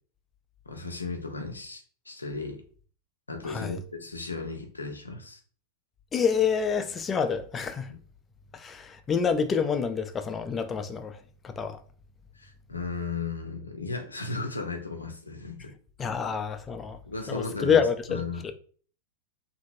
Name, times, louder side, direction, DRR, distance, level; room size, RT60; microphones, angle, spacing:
voice 1, 0.7-2.6 3.3-5.4 7.9-8.0 12.3-15.7 16.0-16.2 17.1-17.8 18.1-18.5, left 3 dB, 80° left, 0.5 m, -35 dB
voice 2, 3.4-3.8 6.1-7.9 8.5-11.2 11.4-11.8 16.0-17.0 17.3-18.5, left 6 dB, 20° left, 0.4 m, -27 dB
2.8 x 2.6 x 2.6 m
figure-of-eight pair, 90°, 0 cm